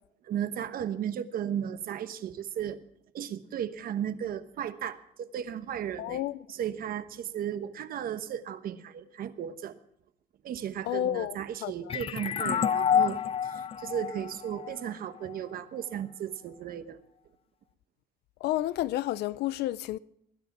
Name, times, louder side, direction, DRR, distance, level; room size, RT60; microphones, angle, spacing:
voice 1, 0.3-2.8 3.1-6.2 6.5-9.8 10.4-17.0, right 9 dB, 60° right, 1.1 m, -35 dB
voice 2, 6.0-6.5 10.8-12.0 18.4-20.0, left 14 dB, 75° left, 0.6 m, -31 dB
sound 1, 11.9-15.3, left 8 dB, 35° left, 0.5 m, -28 dB
21.0 x 9.8 x 6.0 m
cardioid pair, 110°, 17 cm